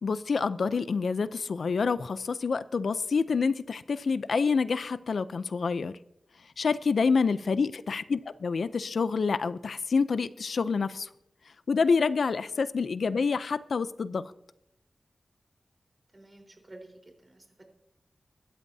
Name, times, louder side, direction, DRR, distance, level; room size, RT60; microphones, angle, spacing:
voice 1, 0.0-5.9 6.6-11.1 11.7-14.2, left 5 dB, 80° left, 0.5 m, -27 dB
voice 2, 7.2-7.6 12.4-12.5 16.1-17.4, right 2 dB, 30° right, 4.1 m, -51 dB
24.5 x 13.0 x 2.8 m
wide cardioid pair, 70°, 0 cm